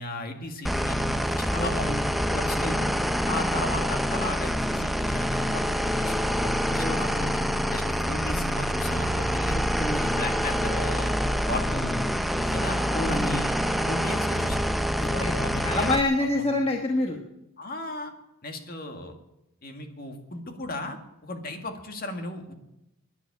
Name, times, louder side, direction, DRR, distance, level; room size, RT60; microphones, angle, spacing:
voice 1, 0.0-2.0 2.3-2.9 3.3-7.4 7.7-9.6 9.9-11.2 11.5-12.1 12.4-12.8 13.1-13.6 13.8-14.6 15.0-15.9 16.2-16.6 17.6-18.1 18.4-19.2 19.6-22.5, left 2 dB, 45° left, 5 dB, 2.0 m, -36 dB
sound 1, 0.6-16.0, equal, ahead, 0.5 m, -26 dB
voice 2, 1.5-2.7 6.8-7.2 9.5-10.1 12.9-13.4 15.0-15.3 15.6-17.2, left 2 dB, 25° left, 1 dB, 1.2 m, -28 dB
12.0 x 10.5 x 8.2 m, 0.89 s
head